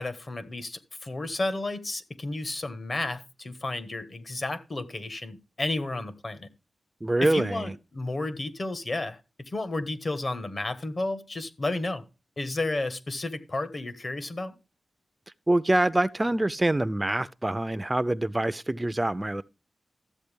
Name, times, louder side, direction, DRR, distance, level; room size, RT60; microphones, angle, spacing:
voice 1, 0.0-6.5 7.2-9.2 9.5-12.0 12.4-14.5, left 2 dB, 45° left, 1.4 m, -32 dB
voice 2, 7.0-7.7 15.5-19.4, right 1 dB, 20° right, 0.4 m, -25 dB
13.0 x 8.2 x 3.5 m
wide cardioid pair, 80°, 0 cm